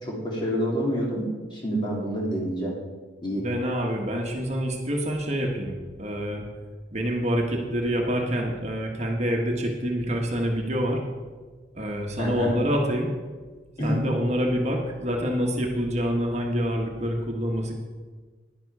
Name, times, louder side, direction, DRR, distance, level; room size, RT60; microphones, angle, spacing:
voice 1, 0.0-2.7 3.2-3.5 12.2-12.5 13.8-14.0, equal, 25° left, -3 dB, 2.7 m, -27 dB
voice 2, 3.4-6.4 6.9-11.0 11.7-13.1 13.8-17.7, equal, 35° right, 0 dB, 1.3 m, -26 dB
10.5 x 10.5 x 4.7 m, 1.4 s
head